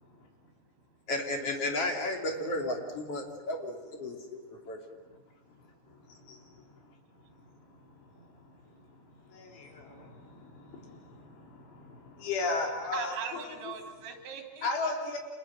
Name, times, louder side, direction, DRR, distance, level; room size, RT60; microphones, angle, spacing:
voice 1, 0.0-1.1 4.1-4.3 4.6-4.7 5.0-5.1 5.7-6.2 8.7-8.9 9.2-11.2 11.5-11.7 11.9-12.2 12.9-14.7, right 7 dB, 75° right, 3 dB, 5.4 m, -45 dB
voice 2, 1.1-4.4 4.7-4.8, left 1 dB, 35° left, 2 dB, 3.3 m, -33 dB
voice 3, 9.4-9.8 12.2-13.5 14.6-15.2, left 3 dB, 85° left, 1 dB, 6.4 m, -32 dB
29.5 x 26.5 x 7.7 m, 1.4 s
omnidirectional pair, 5.3 m